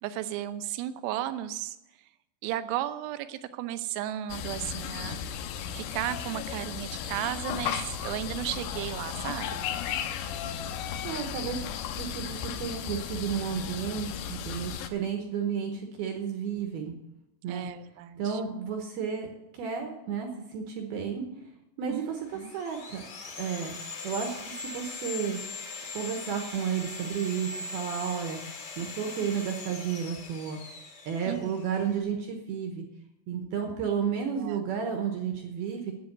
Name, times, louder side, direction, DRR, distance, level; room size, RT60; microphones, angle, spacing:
voice 1, 0.0-1.8 2.4-5.2 5.7-9.7 17.5-18.4 21.9-22.0 22.4-22.5 31.3-31.5 34.4-34.6, right 12 dB, 90° right, 11 dB, 3.5 m, -34 dB
sound 1, 4.3-14.9, left 8 dB, 80° left, 2.5 m, -35 dB
voice 2, 11.0-11.6 11.9-17.0 17.4-17.7 18.2-21.3 21.8-23.0 23.4-23.7 24.0-25.4 25.9-28.4 28.8-30.6 31.1-32.8 33.3-35.9, right 7 dB, 70° right, 3 dB, 2.5 m, -32 dB
Sawing, 22.1-32.0, left 4 dB, 40° left, 2.7 m, -41 dB
10.5 x 8.7 x 9.3 m, 0.89 s
omnidirectional pair, 5.8 m